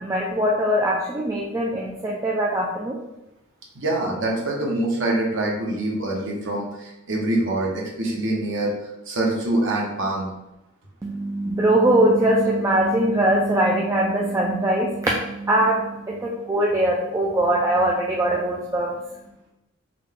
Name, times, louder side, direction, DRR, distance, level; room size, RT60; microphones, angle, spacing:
voice 1, 0.0-3.0 11.0-18.9, right 1 dB, 15° right, -3 dB, 0.3 m, -21 dB
voice 2, 3.7-8.7 9.1-10.3, right 1 dB, 60° right, -2 dB, 0.9 m, -25 dB
3.7 x 2.2 x 3.5 m, 0.92 s
head